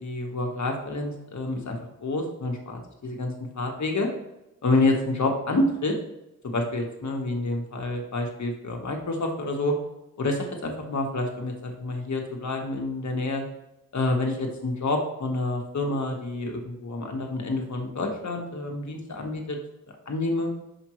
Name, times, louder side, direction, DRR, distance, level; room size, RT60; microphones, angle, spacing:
voice 1, 0.0-4.1 4.6-6.0 6.4-9.8 10.2-13.4 13.9-19.6 20.1-20.5, left 2 dB, 60° left, 2 dB, 1.4 m, -28 dB
6.0 x 5.0 x 3.1 m, 0.92 s
cardioid pair, 65°, 33 cm